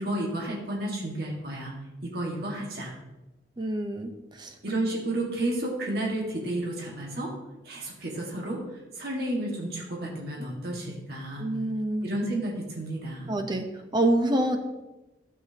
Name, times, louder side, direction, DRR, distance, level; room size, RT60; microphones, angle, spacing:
voice 1, 0.0-1.7 2.0-2.9 4.6-7.3 7.6-8.6 9.0-11.5 12.0-13.3, right 1 dB, 60° right, -2 dB, 1.8 m, -31 dB
voice 2, 3.6-4.5 11.4-12.1 13.3-13.7 13.9-14.6, right 1 dB, 25° right, 4 dB, 0.8 m, -26 dB
12.5 x 7.5 x 2.9 m, 1.0 s
head